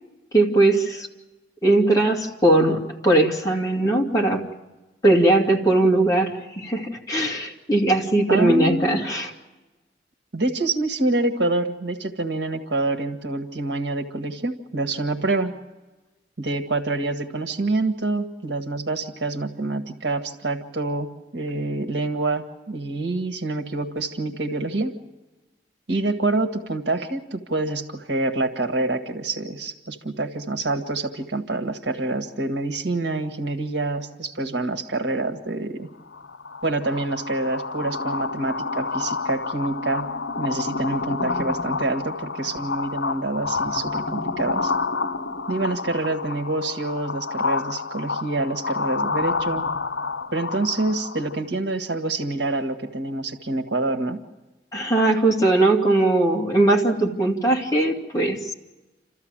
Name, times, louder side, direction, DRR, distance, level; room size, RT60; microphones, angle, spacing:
voice 1, 0.3-1.1 1.6-4.4 5.0-9.3 54.7-58.5, right 2 dB, 20° left, -1 dB, 2.4 m, -20 dB
voice 2, 8.3-9.0 10.3-15.6 16.4-25.0 25.9-35.9 36.6-40.1 40.4-44.7 45.5-49.7 50.3-54.2, right 2 dB, 70° right, 5 dB, 1.7 m, -26 dB
sound 1, 36.1-51.4, left 4 dB, 85° left, 1.2 m, -29 dB
28.0 x 14.0 x 8.9 m, 1.1 s
head